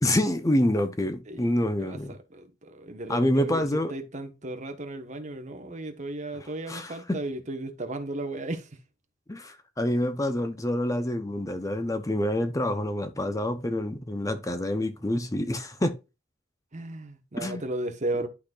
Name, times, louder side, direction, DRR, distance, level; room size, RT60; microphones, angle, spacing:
voice 1, 0.0-2.1 3.1-3.9 6.7-7.2 9.3-15.9 17.4-17.6, left 1 dB, 15° left, 0.7 m, -27 dB
voice 2, 1.8-8.8 16.7-18.3, right 2 dB, 40° right, 1.3 m, -35 dB
11.5 x 4.1 x 2.5 m
head